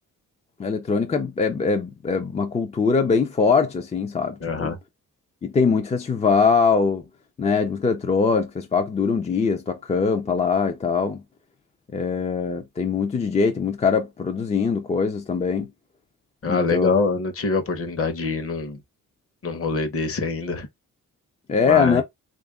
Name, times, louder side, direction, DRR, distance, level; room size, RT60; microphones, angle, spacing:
voice 1, 0.6-4.7 5.4-7.0 7.4-11.2 11.9-15.7 16.5-16.9 21.5-22.0, left 5 dB, 20° left, 0.3 m, -22 dB
voice 2, 4.4-4.8 16.4-18.8 19.4-20.7 21.6-22.0, left 4 dB, 45° left, 0.8 m, -24 dB
3.4 x 2.4 x 3.4 m
wide cardioid pair, 145°, 33 cm